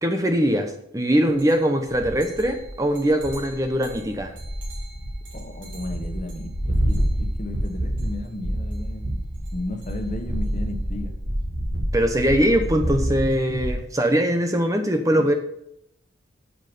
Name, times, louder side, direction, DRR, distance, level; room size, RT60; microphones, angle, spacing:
voice 1, 0.0-4.3 11.9-15.3, equal, 15° right, 6 dB, 0.8 m, -21 dB
sound 1, 1.4-1.5 1.9-13.7, equal, 75° right, 3.7 m, -28 dB
voice 2, 5.3-9.2 9.5-11.1 15.1-15.2, left 1 dB, 40° left, 5 dB, 1.4 m, -34 dB
8.7 x 7.8 x 5.5 m, 0.76 s
head